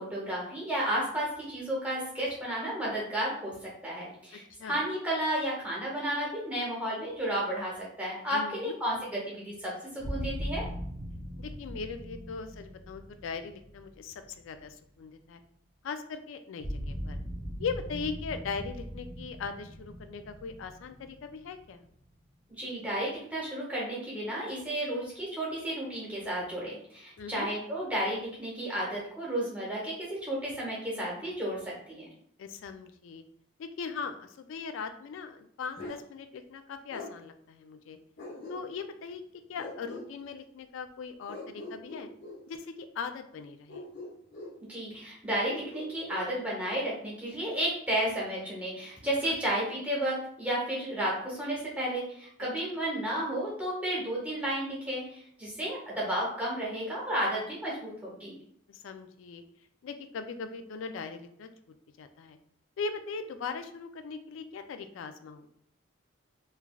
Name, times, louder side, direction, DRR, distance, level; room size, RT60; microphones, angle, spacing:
voice 1, 0.0-10.6 22.6-32.0 44.7-58.4, right 1 dB, 5° right, -6 dB, 0.8 m, -32 dB
voice 2, 8.3-8.8 11.4-15.4 15.8-17.2 17.6-21.8 27.2-27.5 32.4-33.2 33.6-38.0 38.5-39.2 39.5-42.1 42.5-43.8 49.2-49.4 58.7-59.4 59.8-61.5 62.0-62.4 62.8-65.5, left 5 dB, 80° left, 8 dB, 0.3 m, -39 dB
sound 1, 10.0-15.0 16.6-22.3, equal, 45° right, 0.6 m, -40 dB
Bark, 35.8-36.0 36.9-37.1 38.2-38.9 39.5-40.1 41.3-42.4 43.7-44.6 45.4-46.3, left 2 dB, 60° left, 1.0 m, -43 dB
3.2 x 2.3 x 2.2 m, 0.66 s
head